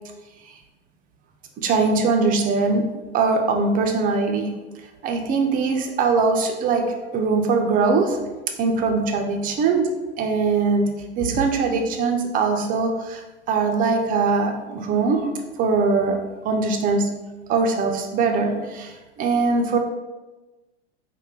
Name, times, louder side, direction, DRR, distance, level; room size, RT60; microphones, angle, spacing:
voice 1, 1.6-2.9 3.1-4.5 5.0-8.2 8.6-9.9 10.2-13.2 13.5-15.3 15.6-16.2 16.4-17.2 17.5-19.8, right 4 dB, 25° right, 3 dB, 0.4 m, -21 dB
3.7 x 2.1 x 3.2 m, 1.1 s
hypercardioid pair, 100°, 35 cm